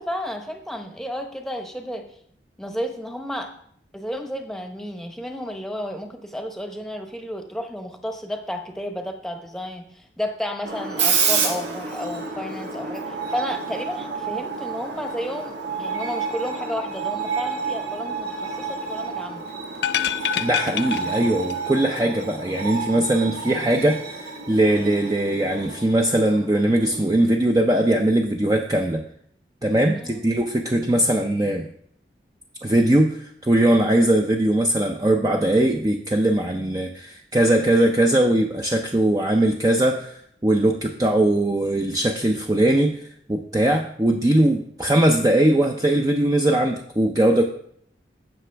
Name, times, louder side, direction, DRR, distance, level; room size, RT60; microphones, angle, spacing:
voice 1, 0.0-2.1 2.6-3.5 3.9-19.4 29.9-30.2, equal, ahead, 4 dB, 0.9 m, -32 dB
Screech, 10.6-27.2, right 5 dB, 85° right, 1.8 m, -29 dB
sound 1, 19.7-21.7 22.0-22.1, left 10 dB, 70° left, 0.3 m, -27 dB
voice 2, 20.4-29.0 29.6-31.7 32.6-47.4, right 1 dB, 20° right, 2 dB, 0.5 m, -20 dB
15.5 x 5.9 x 3.4 m, 0.65 s
head